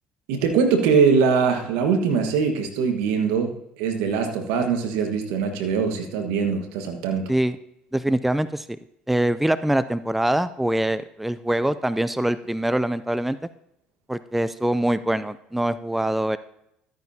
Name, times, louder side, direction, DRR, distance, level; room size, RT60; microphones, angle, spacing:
voice 1, 0.3-7.3, right 5 dB, 80° right, 5 dB, 1.5 m, -22 dB
voice 2, 7.9-8.8 9.1-13.4 14.1-16.4, right 1 dB, 5° right, 14 dB, 0.4 m, -24 dB
13.0 x 9.2 x 2.8 m, 0.79 s
supercardioid pair, 80°, 4 cm